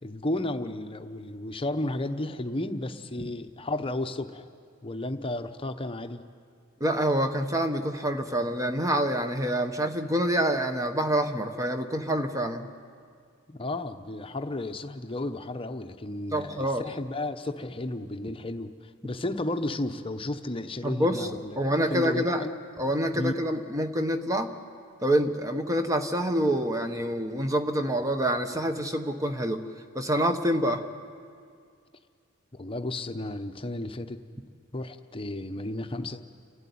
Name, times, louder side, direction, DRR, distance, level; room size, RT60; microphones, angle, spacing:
voice 1, 0.0-4.5 4.8-6.2 13.5-21.6 21.9-22.6 23.1-23.3 32.5-34.2 34.7-36.2, left 1 dB, 25° left, 7 dB, 0.9 m, -33 dB
voice 2, 6.8-12.7 16.3-16.8 20.8-21.3 21.6-22.5 22.8-24.5 25.0-29.6 29.9-30.8, right 1 dB, 15° right, 7 dB, 1.1 m, -26 dB
30.0 x 12.5 x 9.4 m, 2.2 s
head